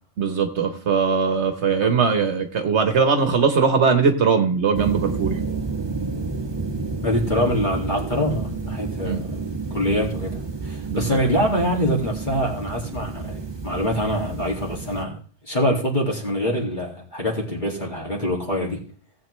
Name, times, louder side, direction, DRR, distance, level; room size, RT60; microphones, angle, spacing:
voice 1, 0.2-5.4 9.0-9.2 10.9-11.2, right 5 dB, 70° right, 7 dB, 1.3 m, -20 dB
sound 1, 4.7-15.0, right 4 dB, 20° right, 1.1 m, -30 dB
voice 2, 7.0-15.1 15.4-18.8, equal, 40° left, -3 dB, 2.3 m, -25 dB
16.5 x 8.1 x 3.2 m, 0.42 s
omnidirectional pair, 1.2 m